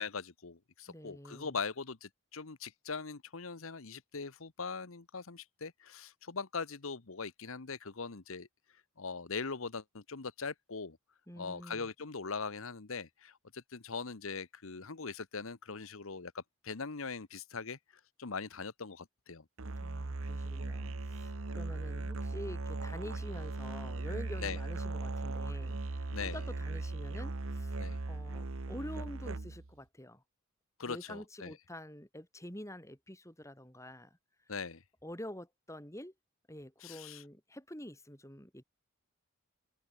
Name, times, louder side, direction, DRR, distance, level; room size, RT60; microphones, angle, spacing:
voice 1, 0.0-8.5 9.0-11.0 11.4-17.8 18.2-19.4 24.4-24.6 26.1-26.4 27.8-28.0 30.8-31.5 34.5-34.8 36.8-37.2, left 5 dB, 70° left, 1.1 m, -41 dB
voice 2, 0.9-1.6 11.3-11.9 19.8-30.2 30.8-34.2 34.5-34.6 35.0-36.1 36.5-38.6, left 1 dB, 15° left, 5.7 m, -47 dB
Musical instrument, 19.6-29.7, right 3 dB, 70° right, 1.0 m, -38 dB
head